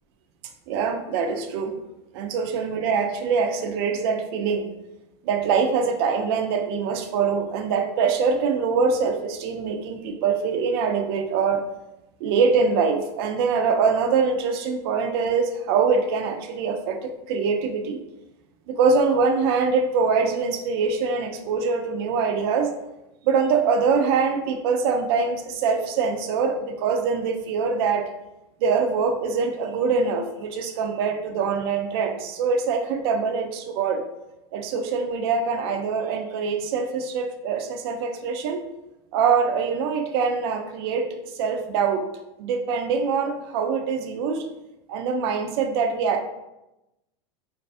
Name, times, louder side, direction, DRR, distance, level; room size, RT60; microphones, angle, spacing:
voice 1, 0.7-1.8 2.1-4.7 5.2-11.6 12.2-18.0 18.7-22.7 23.2-28.1 28.6-34.1 34.5-38.6 39.1-41.1 41.4-42.1 42.4-44.5 44.9-46.2, right 5 dB, 60° right, 5 dB, 0.4 m, -24 dB
2.4 x 2.4 x 2.4 m, 0.94 s
supercardioid pair, 140°, 15 cm